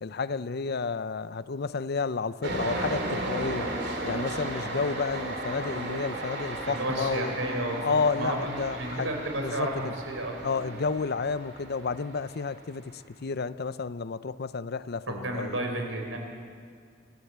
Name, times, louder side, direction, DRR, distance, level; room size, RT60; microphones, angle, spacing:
voice 1, 0.0-3.7 4.0-7.3 7.8-9.1 9.4-9.9 10.4-15.6, left 4 dB, 55° left, 15 dB, 0.6 m, -31 dB
sound 1, 2.4-12.8, right 2 dB, 60° right, 3.1 m, -35 dB
voice 2, 6.7-7.8 8.1-8.5 8.8-10.4 10.6-10.8 15.1-16.2, right 1 dB, 85° right, 2 dB, 4.5 m, -32 dB
27.0 x 14.5 x 8.1 m, 2.2 s
head